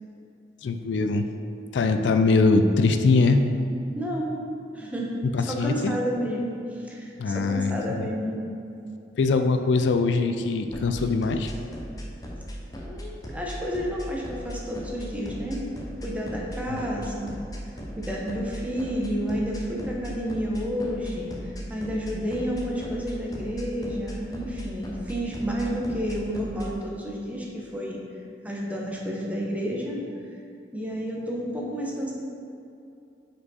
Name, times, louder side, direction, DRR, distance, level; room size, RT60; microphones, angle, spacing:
voice 1, 0.6-1.3 1.7-3.4 5.3-5.9 7.2-8.1 9.2-11.5 16.7-16.8, left 3 dB, 80° left, 8 dB, 0.4 m, -22 dB
voice 2, 3.9-4.4 4.7-5.1 5.4-8.5 12.9-17.4 17.6-28.0 28.4-30.0 30.7-32.1, equal, 10° right, -3 dB, 0.8 m, -30 dB
sound 1, 10.7-26.7, equal, 20° left, 0.6 m, -37 dB
5.0 x 4.6 x 4.1 m, 2.6 s
head